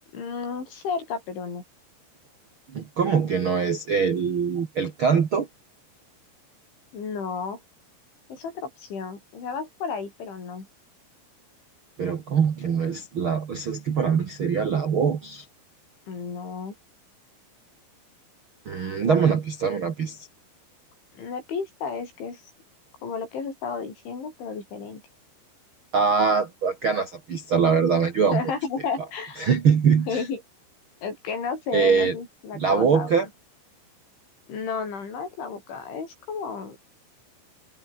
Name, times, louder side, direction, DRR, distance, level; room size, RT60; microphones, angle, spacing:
voice 1, 0.1-1.6 6.9-7.6 8.3-10.7 16.1-16.7 19.0-19.2 21.2-22.4 23.0-25.0 28.3-29.4 30.1-30.4 31.0-33.1 34.5-36.8, left 5 dB, 80° left, 9.5 m, -32 dB
voice 2, 2.7-5.5 12.0-15.4 18.6-20.2 25.9-28.4 29.4-30.2 31.7-32.1 32.5-33.3, right 6 dB, 90° right, 1.1 m, -23 dB
omnidirectional pair, 5.3 m